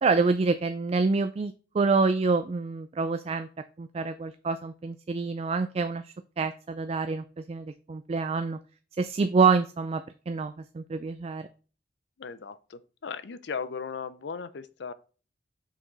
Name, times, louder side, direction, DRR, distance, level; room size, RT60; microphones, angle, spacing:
voice 1, 0.0-3.5 3.8-8.6 9.0-11.5, right 4 dB, 35° right, 0.3 m, -27 dB
voice 2, 12.2-14.9, left 5 dB, 70° left, 0.5 m, -37 dB
6.1 x 4.9 x 3.9 m
head